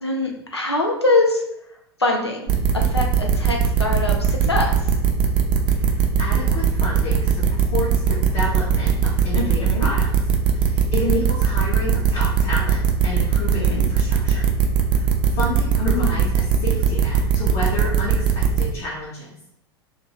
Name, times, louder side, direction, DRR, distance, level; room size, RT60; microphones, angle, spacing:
voice 1, 0.0-1.4 2.0-4.7 9.4-9.9 13.5-13.8 15.8-16.2, left 2 dB, 90° left, 1 dB, 0.6 m, -23 dB
sound 1, 2.5-18.6, right 8 dB, 40° right, 0.6 m, -19 dB
voice 2, 5.7-10.1 10.5-14.5 14.9-19.4, left 1 dB, 45° left, -7 dB, 1.0 m, -30 dB
2.8 x 2.6 x 4.2 m, 0.79 s
figure-of-eight pair, 80°, 13 cm